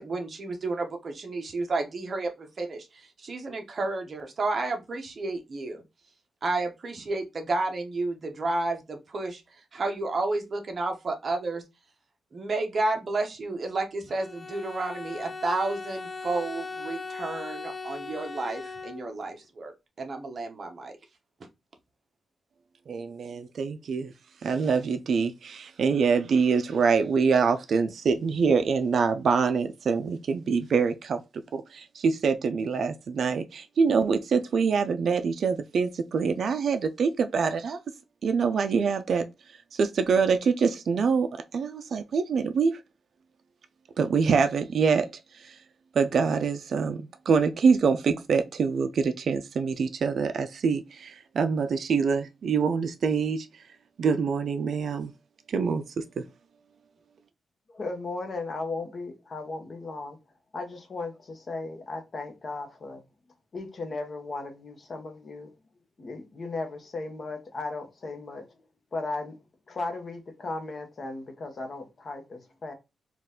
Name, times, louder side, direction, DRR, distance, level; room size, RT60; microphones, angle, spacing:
voice 1, 0.0-5.8 6.4-9.4 9.7-11.6 12.3-21.0, right 2 dB, 40° right, 0.8 m, -31 dB
Bowed string instrument, 14.1-19.3, left 4 dB, 20° left, 0.3 m, -39 dB
voice 2, 22.9-24.1 24.4-31.2 31.5-37.8 38.2-39.2 39.7-41.3 41.5-42.8 44.0-45.1 45.4-45.6 46.0-53.5 54.0-55.1 55.5-55.8 56.2-56.3, right 5 dB, 55° right, 0.4 m, -25 dB
voice 3, 57.7-60.2 60.5-63.0 63.5-65.5 66.0-68.5 68.9-69.3 69.7-72.7, left 3 dB, 40° left, 0.8 m, -36 dB
4.4 x 2.4 x 3.6 m
wide cardioid pair, 150°, 0 cm